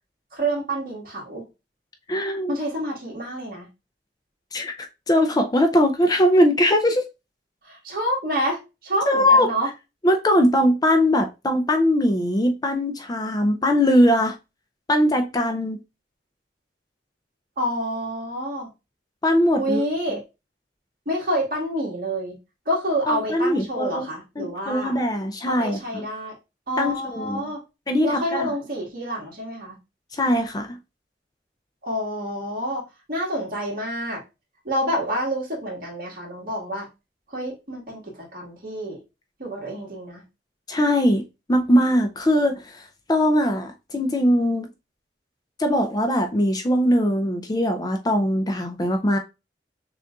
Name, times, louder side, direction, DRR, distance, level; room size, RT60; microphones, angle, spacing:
voice 1, 0.3-1.5 2.5-3.7 7.6-9.7 17.6-18.7 19.6-20.2 21.1-22.3 22.7-25.0 25.5-26.4 26.7-27.6 28.0-29.8 31.8-34.2 34.7-36.9 37.3-39.0 39.4-40.2, equal, 55° right, 1.7 m, -28 dB
voice 2, 2.1-2.6 4.5-7.1 9.1-9.5 10.0-14.4 14.9-15.8 19.2-19.8 23.1-24.0 24.4-26.0 26.8-27.4 27.9-28.5 30.1-30.8 40.7-41.2 41.5-42.8 43.1-44.7 45.6-49.2, equal, 20° left, 0.4 m, -21 dB
6.4 x 2.5 x 2.3 m
head